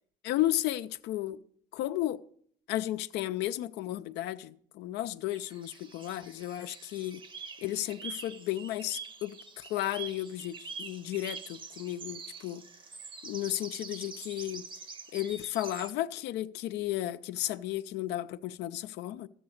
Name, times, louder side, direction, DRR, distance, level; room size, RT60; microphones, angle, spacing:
voice 1, 0.2-1.4 1.7-2.2 2.7-7.2 7.6-12.6 13.2-14.6 15.1-19.3, left 14 dB, 85° left, 0.5 m, -34 dB
sound 1, 5.3-15.9, right 5 dB, 30° right, 0.8 m, -45 dB
12.5 x 7.8 x 6.5 m
cardioid pair, 110°, 17 cm